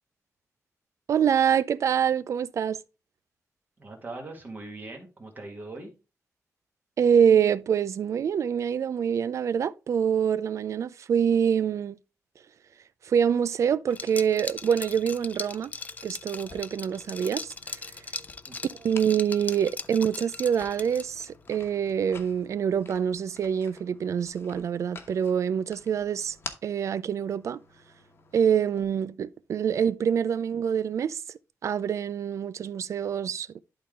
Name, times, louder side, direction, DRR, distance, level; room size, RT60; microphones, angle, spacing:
voice 1, 1.1-2.8 7.0-12.0 13.1-15.7 16.0-17.5 18.8-26.4 26.6-27.6 28.3-31.2 31.6-33.6, right 8 dB, 65° right, 0.4 m, -25 dB
voice 2, 3.8-5.9 18.5-18.6, right 2 dB, 35° right, 1.9 m, -40 dB
Liquid, 13.9-21.3, left 4 dB, 25° left, 0.4 m, -39 dB
sound 1, 16.4-28.8, left 4 dB, 45° left, 1.1 m, -49 dB
11.5 x 3.9 x 3.5 m
wide cardioid pair, 165°, 6 cm